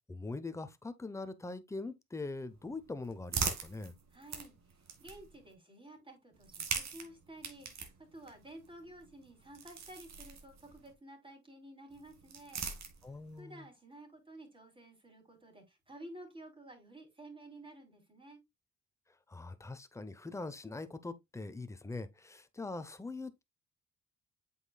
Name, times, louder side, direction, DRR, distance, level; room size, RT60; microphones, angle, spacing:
voice 1, 0.1-4.0 13.0-13.7 19.3-23.4, left 3 dB, 10° left, 0.8 m, -42 dB
sound 1, 2.5-5.5 6.3-10.9 11.9-13.4, right 6 dB, 60° right, 2.1 m, -42 dB
voice 2, 4.1-4.5 5.0-12.7 13.4-18.4, right 1 dB, 15° right, 3.4 m, -52 dB
8.0 x 5.6 x 2.3 m
cardioid pair, 90°, 30 cm